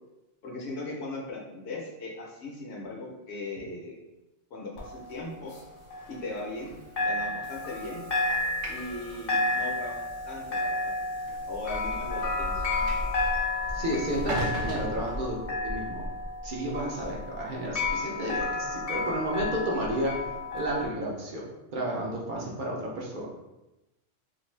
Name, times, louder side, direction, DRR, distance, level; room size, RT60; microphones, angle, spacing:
voice 1, 0.4-4.0 4.5-5.6 6.1-8.1 8.7-10.9 11.5-12.9, left 2 dB, 70° left, -2 dB, 0.9 m, -38 dB
sound 1, 4.8-6.7 7.0-20.9, left 2 dB, 45° left, 0.5 m, -31 dB
Train / Sliding door, 6.6-15.9, right 2 dB, 85° right, 0.9 m, -41 dB
voice 2, 13.7-16.1 16.4-20.2 20.5-21.4 21.7-23.3, right 1 dB, 55° right, -3 dB, 0.6 m, -32 dB
2.5 x 2.5 x 3.1 m, 0.99 s
omnidirectional pair, 1.2 m